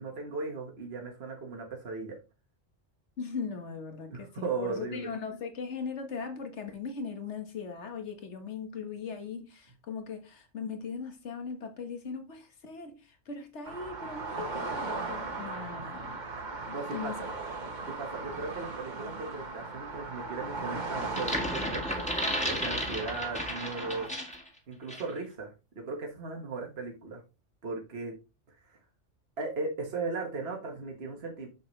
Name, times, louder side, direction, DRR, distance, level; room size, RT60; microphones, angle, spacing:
voice 1, 0.0-2.2 4.1-5.1 15.7-16.0 16.7-17.3 17.9-22.2 22.5-24.1 24.7-27.2 27.6-28.1 28.6-28.8 29.4-31.5, right 3 dB, 55° right, 1.7 m, -37 dB
voice 2, 3.2-16.2 16.7-17.3, left 5 dB, 70° left, 1.7 m, -39 dB
sound 1, 13.6-24.1, right 3 dB, 40° right, 1.3 m, -38 dB
sound 2, 21.0-24.5 24.9-25.1, equal, 5° left, 1.6 m, -33 dB
7.2 x 6.7 x 3.2 m
omnidirectional pair, 1.2 m